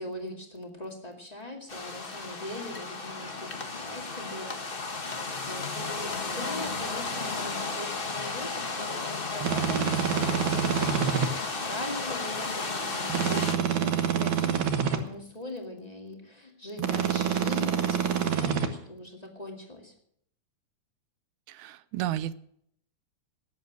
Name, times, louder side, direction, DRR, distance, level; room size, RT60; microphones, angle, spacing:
voice 1, 0.0-19.9, left 1 dB, 15° left, 2 dB, 1.7 m, -41 dB
sound 1, 1.7-13.5, left 3 dB, 65° left, 0.5 m, -34 dB
sound 2, 9.4-11.3 13.1-15.0 16.8-18.7, right 8 dB, 60° right, 1.3 m, -27 dB
voice 2, 21.5-22.3, right 12 dB, 75° right, 16 dB, 2.0 m, -32 dB
19.0 x 8.1 x 6.2 m, 0.67 s
omnidirectional pair, 3.7 m